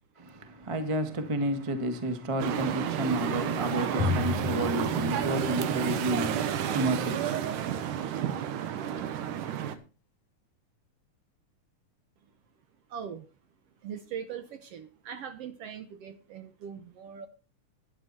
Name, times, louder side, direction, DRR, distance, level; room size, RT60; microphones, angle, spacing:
voice 1, 0.2-7.6, right 1 dB, 35° right, 0.4 m, -31 dB
sound 1, 2.4-9.8, right 9 dB, 85° right, 2.7 m, -31 dB
Drum, 4.0-6.4, left 5 dB, 65° left, 3.2 m, -33 dB
voice 2, 12.9-13.3 13.8-17.3, right 8 dB, 70° right, 1.6 m, -41 dB
12.5 x 10.5 x 4.2 m
omnidirectional pair, 3.6 m